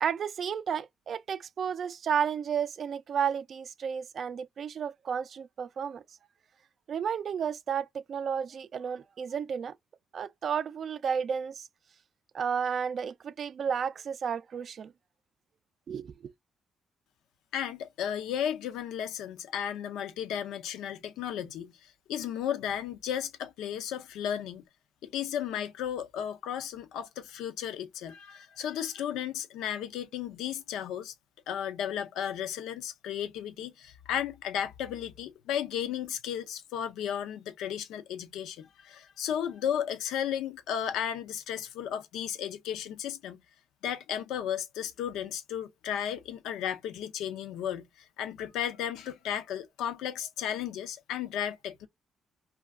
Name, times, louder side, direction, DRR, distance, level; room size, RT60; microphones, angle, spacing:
voice 1, 0.0-6.0 6.9-9.7 10.1-11.7 12.3-14.9 15.9-16.3, right 7 dB, 55° right, 0.3 m, -32 dB
voice 2, 17.5-24.6 25.0-31.1 31.5-43.4 43.8-47.9 48.2-51.9, left 9 dB, 90° left, 0.5 m, -34 dB
2.3 x 2.2 x 3.5 m
cardioid pair, 90°, 0 cm